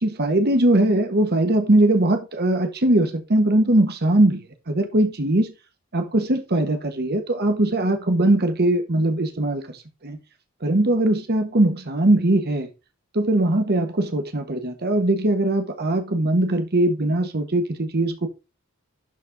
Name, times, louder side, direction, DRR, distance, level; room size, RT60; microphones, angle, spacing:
voice 1, 0.0-5.5 5.9-9.8 10.0-10.2 10.6-12.7 13.1-18.3, right 1 dB, 50° right, 1.4 m, -20 dB
11.5 x 4.3 x 3.6 m
head